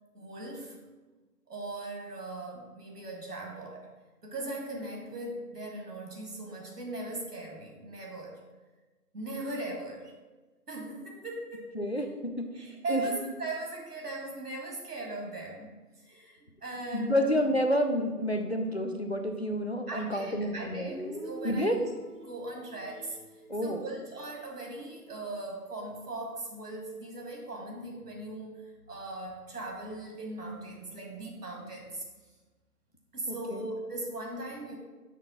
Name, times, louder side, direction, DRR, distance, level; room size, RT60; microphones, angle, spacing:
voice 1, 0.1-0.8 1.5-3.9 4.2-8.4 9.1-10.1 10.7-11.7 12.0-12.1 12.5-15.7 16.0-17.4 19.9-21.8 22.2-23.2 23.6-32.0 33.1-34.8, right 2 dB, 75° right, 0 dB, 2.0 m, -39 dB
voice 2, 11.7-12.5 12.9-13.0 16.9-20.9 21.4-21.8 23.5-23.9 33.3-33.7, equal, 45° left, 5 dB, 0.5 m, -29 dB
Guitar, 20.9-24.8, right 1 dB, 50° right, 1.1 m, -45 dB
5.9 x 3.4 x 5.7 m, 1.2 s
figure-of-eight pair, 180°, 47 cm